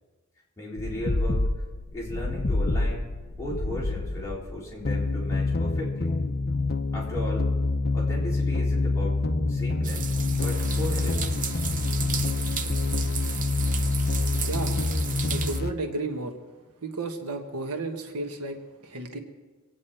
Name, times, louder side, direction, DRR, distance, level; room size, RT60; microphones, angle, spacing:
voice 1, 0.6-1.5 1.9-3.0 3.4-6.1 6.9-7.5 7.9-9.2 9.5-11.4, left 1 dB, 15° left, -6 dB, 4.0 m, -36 dB
sound 1, 0.8-15.7, left 3 dB, 45° left, 0.8 m, -27 dB
sound 2, 9.8-15.6, right 7 dB, 40° right, 0.7 m, -34 dB
voice 2, 14.5-14.8 15.3-16.3 16.8-19.2, right 2 dB, 85° right, 4 dB, 1.4 m, -33 dB
25.0 x 9.5 x 4.5 m, 1.3 s
head